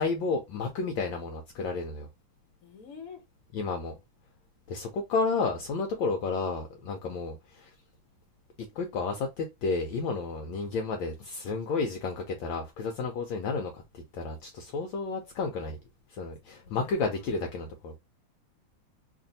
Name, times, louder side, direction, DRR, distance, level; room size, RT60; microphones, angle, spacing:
voice 1, 0.0-2.1 3.5-4.0 4.7-7.7 8.8-15.8 16.1-18.0, left 4 dB, 75° left, 1.3 m, -31 dB
voice 2, 2.6-3.2 16.6-17.6, left 6 dB, 50° left, 1.2 m, -49 dB
3.2 x 2.6 x 3.9 m
omnidirectional pair, 2.3 m